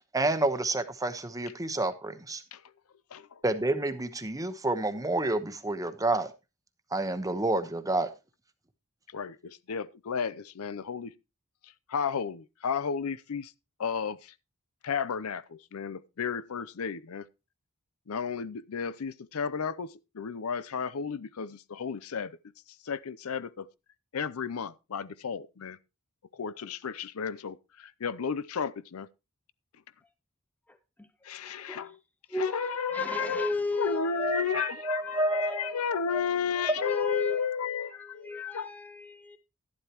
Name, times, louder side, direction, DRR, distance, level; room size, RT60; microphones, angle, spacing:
voice 1, 0.1-2.4 3.4-6.3 6.9-8.1 34.2-35.8 36.1-36.3 36.7-36.8, right 2 dB, 15° right, 1.0 m, -29 dB
voice 2, 9.1-11.1 11.6-13.5 13.8-14.3 14.8-17.3 18.1-22.4 22.8-23.7 24.1-25.8 26.3-29.1 31.2-32.0 32.3-38.7, left 6 dB, 85° left, 0.6 m, -33 dB
voice 3, 30.7-31.9 32.3-34.2 35.0-35.9 36.6-37.5 37.9-39.4, left 2 dB, 10° left, 0.5 m, -35 dB
12.0 x 11.5 x 2.9 m
head